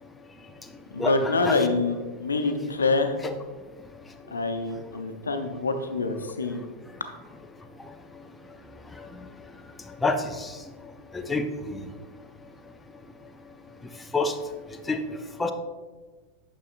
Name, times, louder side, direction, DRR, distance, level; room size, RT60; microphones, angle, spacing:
voice 1, 0.9-3.2 4.3-6.6, left 3 dB, 75° left, 7 dB, 0.7 m, -26 dB
voice 2, 10.0-10.5 11.3-11.8 14.1-14.3 14.9-15.0 15.4-15.5, left 3 dB, 10° left, 6 dB, 0.6 m, -26 dB
9.3 x 6.3 x 2.4 m, 1.3 s
figure-of-eight pair, 90°, 0 cm